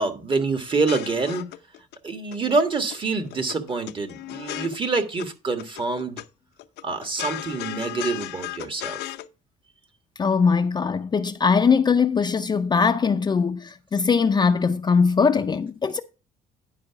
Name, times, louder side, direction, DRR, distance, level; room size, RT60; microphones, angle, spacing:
voice 1, 0.0-1.5 2.0-6.2 6.8-9.1, right 3 dB, 30° right, 1.5 m, -26 dB
sound 1, 0.7-2.0 2.3-3.0 3.2-5.3 5.6-6.3 6.6-9.3, left 16 dB, 80° left, 0.6 m, -35 dB
voice 2, 10.2-16.0, left 5 dB, 25° left, 0.5 m, -21 dB
10.0 x 4.8 x 5.7 m
cardioid pair, 110°, 17 cm